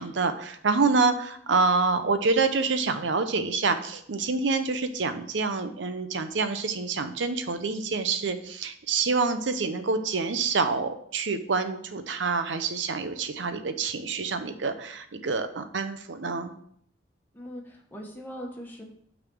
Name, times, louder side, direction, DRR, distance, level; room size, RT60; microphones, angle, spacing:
voice 1, 0.0-16.5, right 4 dB, 75° right, 9 dB, 0.7 m, -27 dB
voice 2, 17.3-18.8, equal, 10° left, -1 dB, 1.3 m, -40 dB
6.0 x 4.1 x 6.1 m, 0.67 s
head